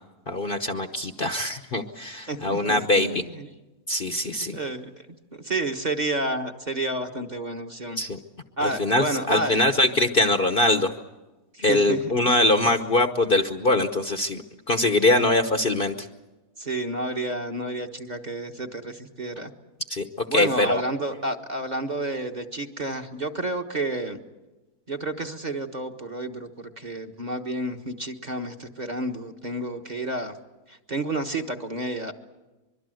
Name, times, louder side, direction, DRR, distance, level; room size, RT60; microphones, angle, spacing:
voice 1, 0.3-3.2 3.9-4.6 8.0-8.2 8.6-10.9 11.6-14.4 14.7-16.1 19.9-20.8, left 2 dB, 40° left, 8 dB, 1.1 m, -23 dB
voice 2, 2.3-3.5 4.1-4.9 5.3-8.0 8.6-9.6 11.5-12.1 15.1-15.3 16.6-19.5 20.3-24.2 24.9-30.3 30.7-32.1, right 2 dB, 30° right, 3 dB, 1.4 m, -30 dB
24.5 x 23.0 x 7.8 m, 1.1 s
omnidirectional pair, 1.6 m